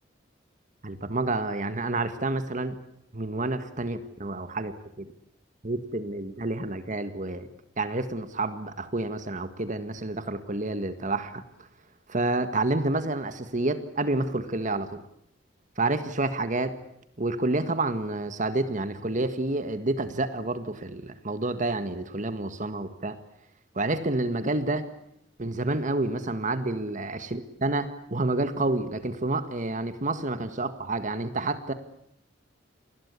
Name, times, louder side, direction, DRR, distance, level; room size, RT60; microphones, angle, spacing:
voice 1, 0.8-2.8 3.1-4.7 5.0-5.1 5.6-7.5 7.8-11.4 12.1-15.0 15.8-16.7 17.2-23.2 23.7-24.8 25.4-31.7, right 2 dB, 45° right, 10 dB, 1.7 m, -29 dB
29.0 x 20.5 x 8.4 m, 0.74 s
head